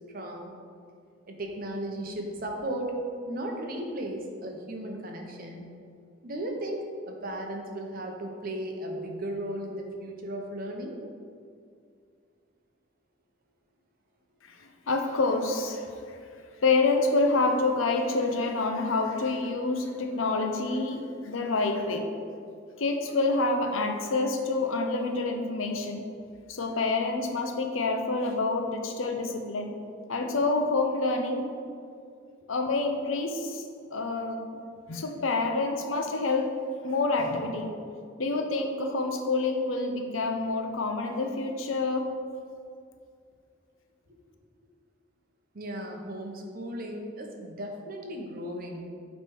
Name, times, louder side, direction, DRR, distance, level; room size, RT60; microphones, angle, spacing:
voice 1, 0.1-0.5 1.3-3.0 3.2-5.7 6.2-11.0 45.5-48.8, right 1 dB, 45° right, 1 dB, 0.9 m, -36 dB
voice 2, 14.4-16.2 16.6-22.1 22.8-26.1 26.5-29.8 30.1-31.5 32.5-34.4 34.9-36.5 36.8-37.8 38.2-42.1, left 3 dB, 85° left, 4 dB, 0.7 m, -27 dB
8.2 x 3.3 x 4.6 m, 2.3 s
head